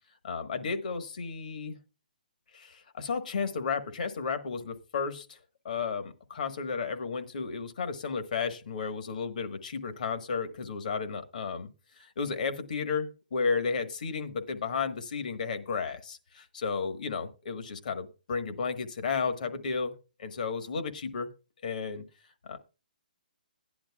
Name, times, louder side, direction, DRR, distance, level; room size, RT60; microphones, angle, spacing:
voice 1, 0.2-1.8 2.5-5.4 5.6-11.7 12.0-21.3 21.6-22.0 22.4-22.6, left 5 dB, 65° left, 9 dB, 1.3 m, -33 dB
15.0 x 10.5 x 2.3 m, 0.32 s
hypercardioid pair, 150°, 5 cm